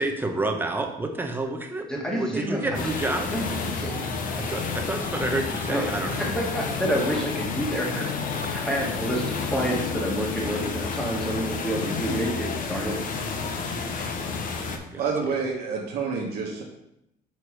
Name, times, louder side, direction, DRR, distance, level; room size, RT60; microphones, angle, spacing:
voice 1, 0.0-3.3 4.3-6.2 14.7-15.1, right 2 dB, 10° right, 3 dB, 0.8 m, -29 dB
voice 2, 1.9-2.8 3.3-4.1 5.7-5.9 6.2-8.1 8.5-13.3, equal, 5° left, -3 dB, 1.7 m, -29 dB
sound 1, 2.7-14.8, left 4 dB, 50° left, 0.8 m, -30 dB
voice 3, 14.9-16.6, right 5 dB, 70° right, -2 dB, 1.2 m, -28 dB
4.8 x 4.6 x 4.8 m, 0.82 s
cardioid pair, 110°, 17 cm